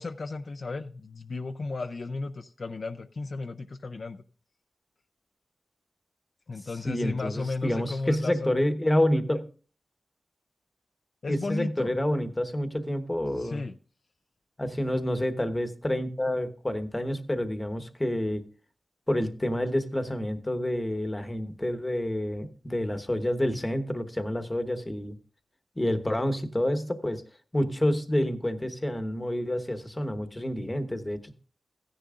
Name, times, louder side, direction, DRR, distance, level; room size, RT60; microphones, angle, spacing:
voice 1, 0.0-4.2 6.5-8.5 11.2-11.9 13.4-13.7, left 3 dB, 55° left, 7 dB, 0.5 m, -34 dB
voice 2, 6.8-9.4 11.3-13.6 14.6-18.4 19.1-25.2 25.8-27.2 27.5-31.3, left 1 dB, 20° left, 9 dB, 1.1 m, -28 dB
15.0 x 10.0 x 2.5 m, 0.38 s
wide cardioid pair, 95°, 0 cm